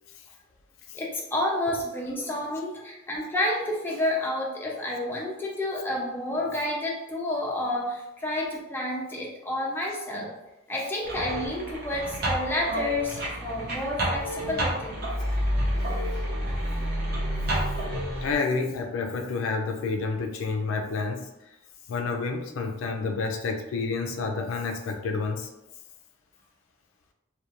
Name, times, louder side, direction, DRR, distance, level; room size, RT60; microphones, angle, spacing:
voice 1, 0.9-10.3 10.7-15.0, left 1 dB, 10° left, -3 dB, 0.4 m, -30 dB
sound 1, 11.0-18.3, equal, 50° right, 0.6 m, -29 dB
voice 2, 18.2-21.3 21.9-25.5, left 4 dB, 80° left, 3 dB, 0.3 m, -29 dB
2.4 x 2.2 x 2.8 m, 0.94 s
head